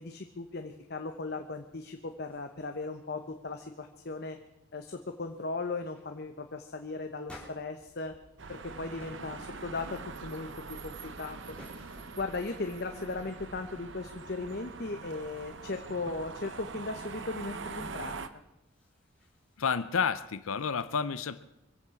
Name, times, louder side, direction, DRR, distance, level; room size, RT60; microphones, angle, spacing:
voice 1, 0.0-4.4 4.7-8.1 8.5-11.6 12.2-18.1, left 3 dB, 50° left, 6 dB, 0.9 m, -37 dB
sound 1, 1.5-1.6 2.0-2.8 3.0-3.4 3.8-4.2 4.8-4.9 5.3-5.5 5.9-6.1 7.2-8.6 9.0-9.3 9.7-10.2 10.7-12.4 18.4-19.7, left 1 dB, 5° left, 3.7 m, -55 dB
sound 2, 8.4-18.3, right 4 dB, 60° right, 0.9 m, -43 dB
voice 2, 19.6-21.4, left 6 dB, 85° left, 14 dB, 0.6 m, -30 dB
24.0 x 8.3 x 7.1 m, 0.87 s
head